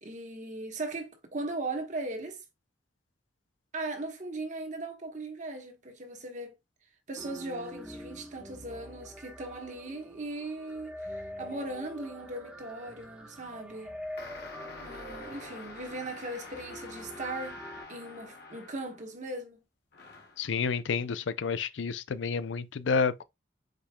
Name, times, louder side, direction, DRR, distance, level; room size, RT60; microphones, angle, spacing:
voice 1, 0.0-2.4 3.7-6.6 7.1-14.0 14.8-17.6 17.9-19.6, right 2 dB, 40° right, 1.1 m, -38 dB
sound 1, 7.2-17.8, equal, 5° right, 0.9 m, -45 dB
sound 2, 14.2-19.2 19.9-20.5, left 3 dB, 60° left, 1.2 m, -47 dB
voice 2, 20.4-23.2, left 5 dB, 90° left, 0.5 m, -30 dB
5.2 x 4.3 x 2.2 m
head